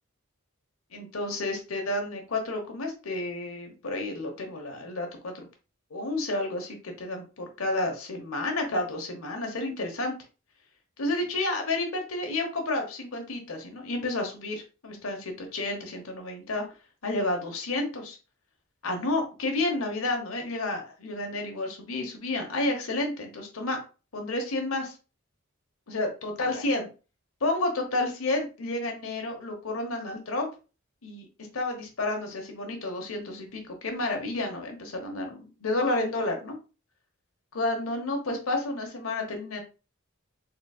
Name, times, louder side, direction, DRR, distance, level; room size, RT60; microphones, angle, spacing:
voice 1, 0.9-5.5 5.9-10.1 11.0-16.6 17.0-18.2 18.8-23.8 24.1-24.9 25.9-26.9 27.4-30.5 31.0-31.3 31.5-36.6 37.5-39.6, left 2 dB, 85° left, 3 dB, 1.1 m, -30 dB
4.0 x 3.8 x 2.3 m, 0.33 s
head